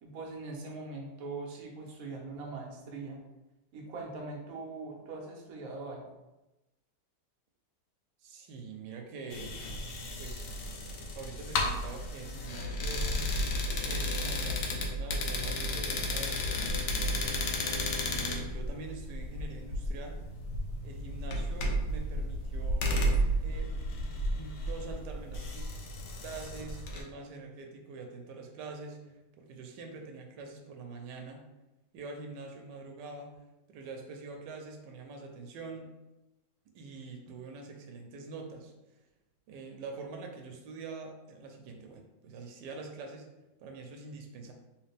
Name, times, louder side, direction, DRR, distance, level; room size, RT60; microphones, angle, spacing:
voice 1, 0.0-3.2 3.7-6.0, right 3 dB, 65° right, 0 dB, 1.1 m, -41 dB
voice 2, 8.2-9.5 10.2-10.6 11.1-13.3 13.8-16.6 17.9-20.2 20.8-22.9 23.4-23.7 24.0-25.6 26.2-31.4 31.9-33.3 33.7-35.9 36.7-38.7 39.5-43.3 43.6-44.5, right 3 dB, 90° right, 3 dB, 1.2 m, -45 dB
sound 1, 9.3-27.0, left 1 dB, 90° left, 1.3 m, -33 dB
3.2 x 3.1 x 3.3 m, 1.0 s
omnidirectional pair, 1.8 m